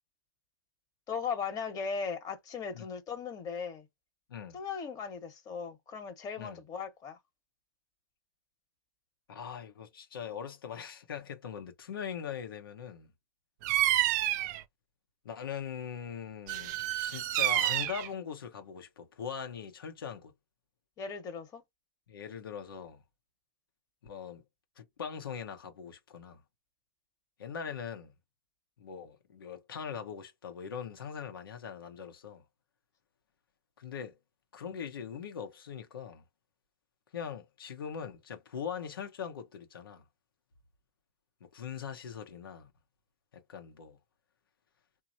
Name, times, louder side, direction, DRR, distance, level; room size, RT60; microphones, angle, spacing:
voice 1, 1.1-3.8 4.5-7.2 21.0-21.6, left 6 dB, 30° left, 1.2 m, -38 dB
voice 2, 9.3-13.1 15.2-20.3 22.1-23.0 24.0-24.4 24.8-26.4 27.4-28.1 28.8-32.4 33.8-34.1 34.5-36.2 37.1-40.0 41.4-42.7 43.3-44.0, left 7 dB, 80° left, 0.8 m, -41 dB
Bird vocalization bird call bird song, 13.6-14.6 16.5-18.1, right 13 dB, 55° right, 0.5 m, -29 dB
3.0 x 2.1 x 2.6 m
hypercardioid pair, 110°, 12 cm